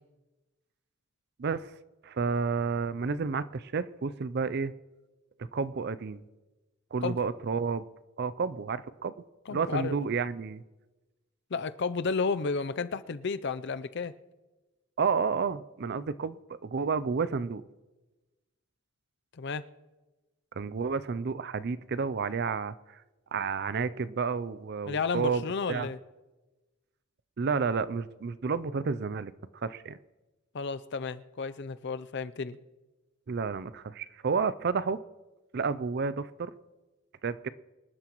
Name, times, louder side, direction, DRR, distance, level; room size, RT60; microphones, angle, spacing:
voice 1, 1.4-1.7 2.0-4.7 5.5-6.2 6.9-7.8 8.2-9.1 9.5-10.6 15.0-17.6 20.6-23.0 23.3-25.4 25.7-25.9 27.4-29.3 29.6-30.0 33.3-35.0 35.5-36.5 37.2-37.5, right 5 dB, 50° right, 0.5 m, -30 dB
voice 2, 9.5-10.0 11.5-14.1 19.4-19.6 24.9-26.0 30.5-32.6, left 4 dB, 55° left, 0.5 m, -32 dB
25.0 x 11.5 x 3.1 m
head